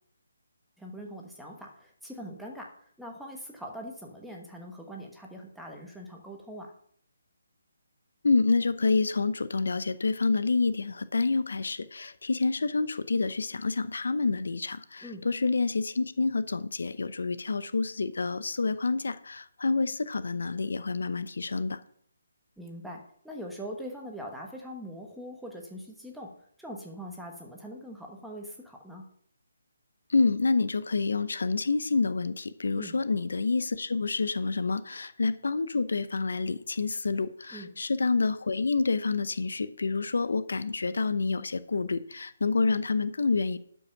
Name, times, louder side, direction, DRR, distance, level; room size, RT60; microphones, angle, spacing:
voice 1, 0.8-2.7 3.0-6.7 15.0-15.3 22.6-26.3 26.6-29.1 32.8-33.0 37.5-37.7, equal, ahead, -1 dB, 1.1 m, -42 dB
voice 2, 8.2-21.8 30.1-43.6, left 4 dB, 75° left, 15 dB, 0.8 m, -28 dB
12.0 x 5.5 x 5.8 m, 0.64 s
hypercardioid pair, 170°, 0 cm